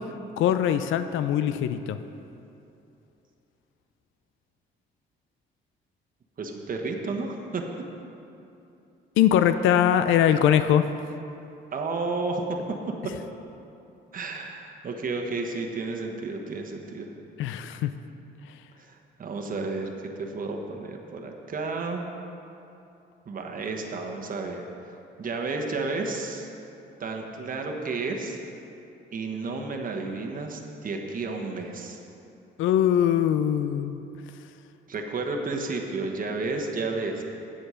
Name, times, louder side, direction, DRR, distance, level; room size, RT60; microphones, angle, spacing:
voice 1, 0.4-2.0 9.2-10.9 17.4-17.9 32.6-34.0, left 10 dB, 85° left, 11 dB, 0.5 m, -22 dB
voice 2, 6.4-7.6 11.7-12.6 14.1-17.1 18.8-19.9 20.2-22.0 23.3-24.6 25.2-26.5 27.0-28.4 29.1-32.0 34.9-37.2, right 3 dB, 45° right, 2 dB, 1.2 m, -32 dB
8.8 x 7.9 x 5.6 m, 2.7 s
cardioid pair, 90°, 20 cm